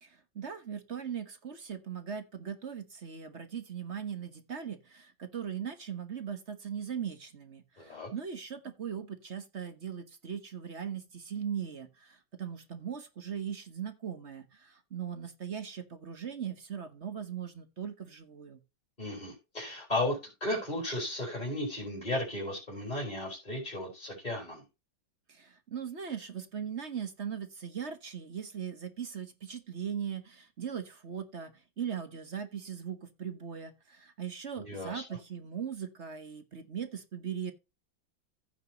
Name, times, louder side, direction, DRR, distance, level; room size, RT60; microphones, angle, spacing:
voice 1, 0.0-18.6 25.3-37.5, right 8 dB, 40° right, 1.3 m, -39 dB
voice 2, 7.8-8.1 19.0-24.6 34.6-35.0, left 1 dB, 20° left, 4.4 m, -35 dB
15.5 x 5.9 x 2.9 m
omnidirectional pair, 2.1 m